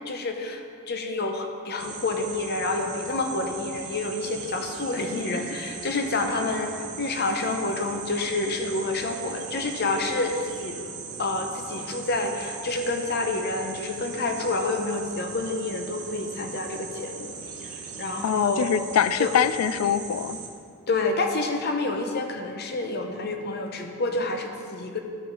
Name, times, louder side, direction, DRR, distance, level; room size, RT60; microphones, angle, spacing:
voice 1, 0.1-10.8 11.2-17.3 18.0-18.7 19.2-19.3 19.8-19.9 20.9-25.0, left 2 dB, 50° left, 4 dB, 0.7 m, -28 dB
sound 1, 1.8-20.5, right 5 dB, 85° right, 1.2 m, -39 dB
voice 2, 18.2-20.4, left 8 dB, 80° left, 14 dB, 0.3 m, -24 dB
12.0 x 5.5 x 3.9 m, 2.4 s
head